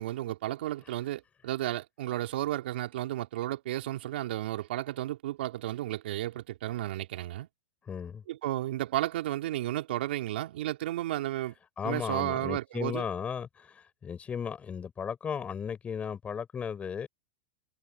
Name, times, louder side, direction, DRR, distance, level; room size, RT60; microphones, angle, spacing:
voice 1, 0.0-7.5 8.3-11.5 11.8-13.1, right 14 dB, 65° right, 2.9 m, -33 dB
voice 2, 7.9-8.2 11.8-17.1, left 7 dB, 20° left, 5.3 m, -35 dB
hypercardioid pair, 110°, 6 cm